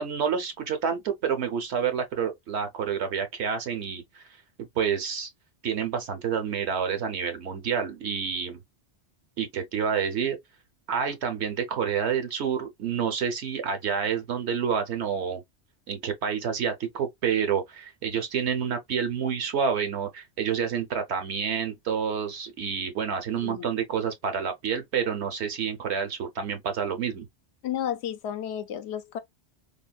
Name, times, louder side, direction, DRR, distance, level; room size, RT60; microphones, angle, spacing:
voice 1, 0.0-4.2 4.7-5.3 5.6-8.6 9.4-10.4 10.9-15.4 15.9-27.3, right 7 dB, 75° right, 1.0 m, -28 dB
voice 2, 27.6-29.2, left 10 dB, 75° left, 0.8 m, -32 dB
3.5 x 2.2 x 2.2 m
omnidirectional pair, 1.2 m